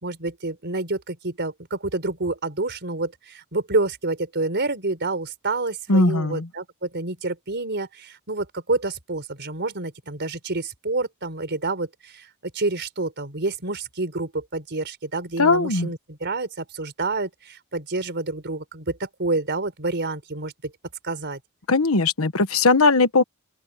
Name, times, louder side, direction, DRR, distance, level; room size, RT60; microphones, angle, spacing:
voice 1, 0.0-12.3 12.5-20.7 21.0-21.4, right 2 dB, 55° right, 4.2 m, -28 dB
voice 2, 5.9-6.5 15.4-15.9 21.7-23.2, left 3 dB, 70° left, 1.3 m, -19 dB
open air
head